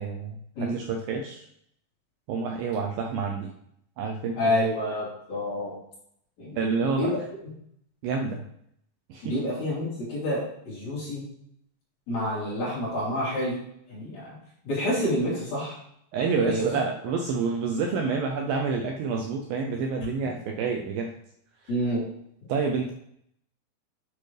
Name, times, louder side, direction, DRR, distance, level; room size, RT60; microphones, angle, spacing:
voice 1, 0.0-1.5 2.3-3.5 4.0-4.6 6.6-7.1 8.0-8.4 9.1-9.4 16.1-21.1 22.5-22.9, right 5 dB, 80° right, 2 dB, 2.2 m, -28 dB
voice 2, 4.4-5.7 6.4-7.2 9.2-11.2 12.1-13.6 13.9-14.3 14.6-15.8 16.4-16.6 21.7-22.0, equal, 45° left, -7 dB, 3.8 m, -28 dB
8.6 x 6.4 x 3.3 m, 0.72 s
omnidirectional pair, 4.7 m